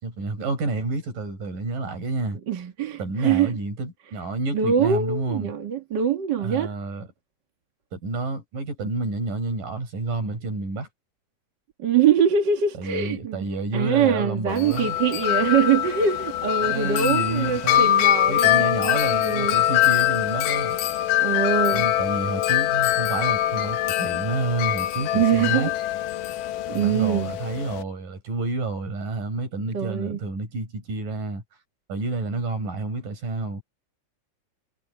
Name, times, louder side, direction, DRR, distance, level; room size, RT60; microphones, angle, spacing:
voice 1, 0.0-2.4 3.0-5.5 6.4-7.1 7.9-10.9 12.8-15.0 16.6-17.9 18.3-20.8 21.7-25.7 26.7-31.4 31.9-33.6, right 3 dB, 90° right, 7.2 m, -29 dB
voice 2, 2.5-3.5 4.5-6.7 11.8-13.4 13.7-19.6 21.2-21.9 25.1-25.7 26.7-27.4 29.7-30.2, right 7 dB, 45° right, 1.6 m, -23 dB
Wind chime, 14.5-27.8, left 13 dB, 85° left, 2.6 m, -23 dB
omnidirectional pair, 3.7 m